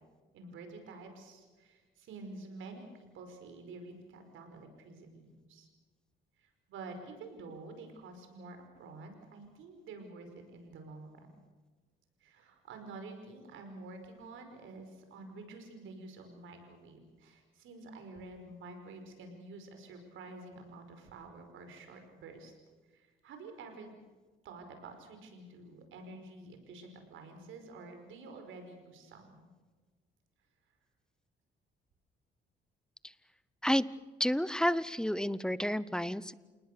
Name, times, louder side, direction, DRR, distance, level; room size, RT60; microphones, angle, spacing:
voice 1, 0.3-5.7 6.4-11.3 12.2-22.5 22.9-23.9 24.4-29.5, right 3 dB, 80° right, 6 dB, 5.2 m, -49 dB
voice 2, 34.2-36.3, equal, 5° left, 18 dB, 0.8 m, -30 dB
28.5 x 19.0 x 6.8 m, 1.3 s
cardioid pair, 90°, 20 cm